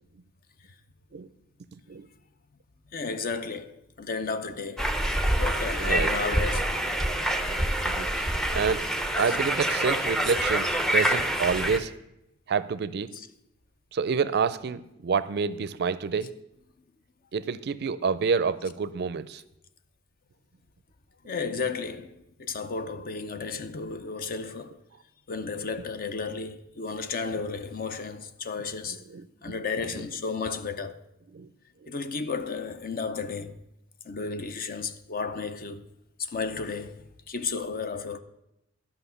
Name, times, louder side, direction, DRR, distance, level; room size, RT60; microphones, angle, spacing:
voice 1, 2.9-4.9 5.3-6.9 9.3-9.4 13.1-13.3 21.2-24.8 25.3-29.0 29.4-31.0 31.9-33.6 34.0-35.9 36.2-38.2, left 4 dB, 45° left, 0.6 m, -33 dB
sound 1, 4.8-11.8, right 1 dB, ahead, 0.6 m, -26 dB
voice 2, 5.8-6.1 7.8-8.3 8.5-8.9 9.2-11.9 12.5-13.1 13.9-16.3 17.3-19.4 29.1-29.2 30.0-30.1 31.3-31.5, right 5 dB, 50° right, 0.4 m, -28 dB
12.0 x 5.8 x 6.9 m
head